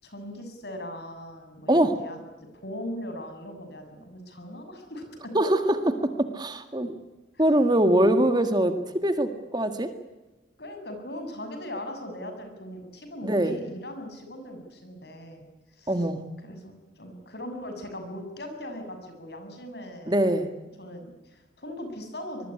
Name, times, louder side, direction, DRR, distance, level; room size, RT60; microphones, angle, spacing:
voice 1, 0.0-5.3 7.3-7.5 10.6-15.4 15.7-16.1 16.4-20.2 20.8-22.5, left 1 dB, 60° left, 6 dB, 7.0 m, -39 dB
voice 2, 5.3-6.9 7.4-9.9 13.2-13.6 15.9-16.2 20.1-20.5, right 1 dB, 25° right, 8 dB, 2.0 m, -23 dB
25.5 x 22.0 x 9.9 m, 1.1 s
head